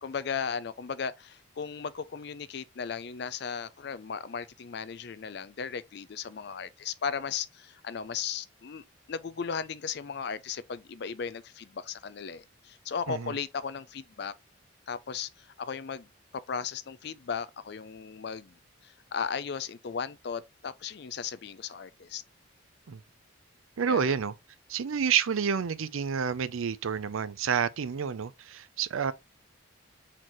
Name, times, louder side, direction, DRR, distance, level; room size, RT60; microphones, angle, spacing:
voice 1, 0.0-14.3 14.9-16.1 16.3-18.5 18.8-22.2 23.9-24.2, left 6 dB, 55° left, 0.4 m, -36 dB
voice 2, 23.8-24.3 24.7-29.1, right 7 dB, 90° right, 0.5 m, -29 dB
4.4 x 3.8 x 3.0 m
head